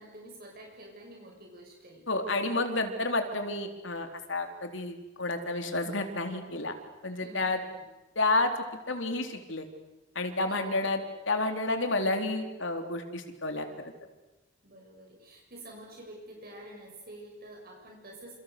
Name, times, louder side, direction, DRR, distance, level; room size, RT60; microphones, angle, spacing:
voice 1, 0.0-2.1 2.4-2.5 7.2-7.9 10.4-10.9 14.6-18.4, right 1 dB, 50° right, 0 dB, 6.9 m, -48 dB
voice 2, 2.1-6.7 7.0-7.6 8.2-8.5 8.9-9.7 10.2-11.0 11.3-13.7, left 2 dB, 70° left, 6 dB, 3.5 m, -30 dB
29.5 x 28.0 x 6.7 m, 1.1 s
head